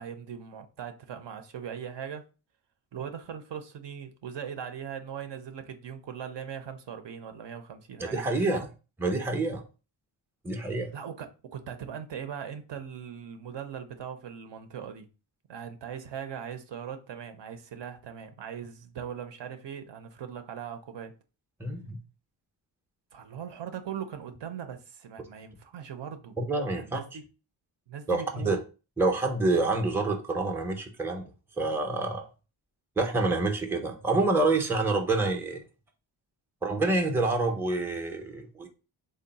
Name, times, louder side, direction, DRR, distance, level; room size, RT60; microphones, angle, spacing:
voice 1, 0.0-2.2 2.9-8.6 10.9-15.1 15.5-21.1 23.1-26.4 26.7-27.2 27.9-28.6, right 8 dB, 65° right, 0.7 m, -40 dB
voice 2, 8.0-8.7 9.0-9.6 10.4-10.9 21.6-22.0 26.4-27.0 28.1-28.6 29.0-31.3 31.6-32.2 33.0-35.6 36.6-38.7, right 2 dB, 5° right, 0.5 m, -27 dB
3.8 x 2.0 x 4.0 m
cardioid pair, 100°, 47 cm